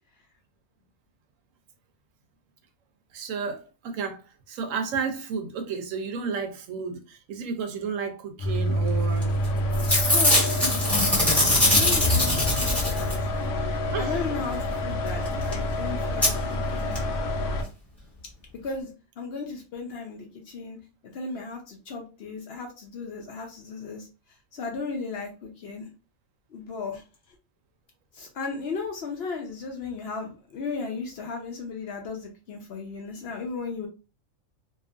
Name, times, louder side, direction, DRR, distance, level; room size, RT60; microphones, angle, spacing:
voice 1, 3.1-3.6 3.8-4.2 4.5-9.3 11.9-12.0 13.9-14.1, right 5 dB, 75° right, 1.0 m, -32 dB
sound 1, 8.4-17.6, left 1 dB, 80° left, 1.0 m, -28 dB
Packing tape duct tape / Tearing, 9.2-9.5 9.7-13.3 15.3-15.4 15.5-15.6 16.2-16.3 17.0-17.1 17.3-17.4, left 1 dB, ahead, 0.8 m, -22 dB
voice 2, 10.0-10.8 11.3-13.1 13.5-16.3 16.7-17.0 18.6-18.9 19.2-20.8 21.1-24.1 24.5-25.9 26.5-27.0 28.1-33.9, left 4 dB, 60° left, 0.7 m, -35 dB
2.8 x 2.4 x 2.4 m
omnidirectional pair, 1.4 m